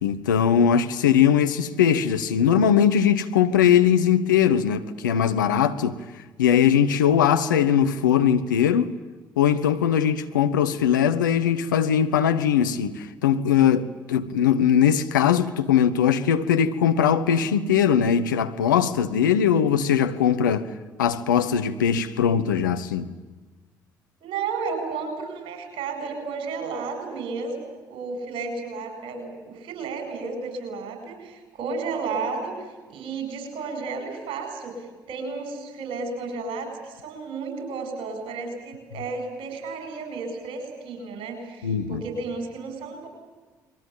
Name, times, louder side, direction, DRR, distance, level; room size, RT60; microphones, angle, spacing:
voice 1, 0.0-6.0 6.4-8.9 9.4-20.7 21.0-23.1 41.6-42.0, left 8 dB, 75° left, 1.2 m, -20 dB
voice 2, 24.2-27.6 27.9-43.1, right 4 dB, 55° right, 7.7 m, -33 dB
29.5 x 22.5 x 8.8 m
figure-of-eight pair, 50°, 10 cm